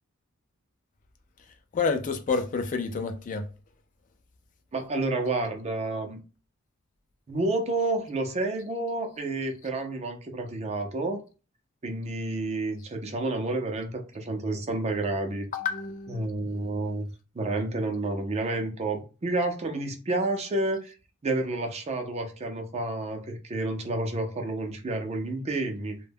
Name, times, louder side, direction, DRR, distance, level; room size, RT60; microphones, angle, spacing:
voice 1, 1.7-3.5 15.5-16.3, left 4 dB, 35° left, 0.3 m, -29 dB
voice 2, 4.7-6.2 7.3-11.2 11.8-15.5 16.1-17.1 17.3-20.9 21.2-26.0, right 2 dB, 30° right, 0.4 m, -30 dB
2.1 x 2.0 x 3.3 m
head